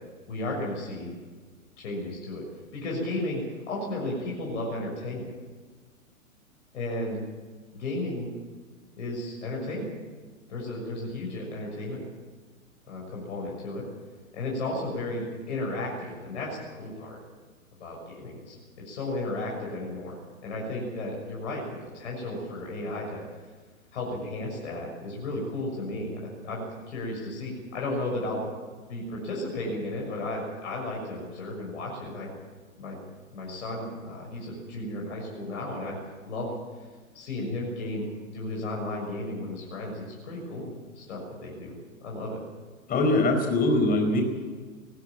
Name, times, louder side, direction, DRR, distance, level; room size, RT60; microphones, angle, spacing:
voice 1, 0.3-1.1 1.8-2.4 2.7-5.3 6.7-7.2 7.7-8.3 9.0-9.9 10.5-12.0 12.9-13.9 14.3-17.2 17.8-18.6 18.8-20.2 20.4-23.2 23.9-28.4 28.9-32.3 32.8-33.0 33.3-36.0 36.3-36.6 37.1-41.7 42.0-42.4, left 2 dB, 55° left, -2 dB, 6.8 m, -34 dB
voice 2, 42.9-44.2, left 2 dB, 20° left, 4 dB, 4.8 m, -22 dB
20.5 x 15.0 x 9.0 m, 1.4 s
figure-of-eight pair, 115°, 42 cm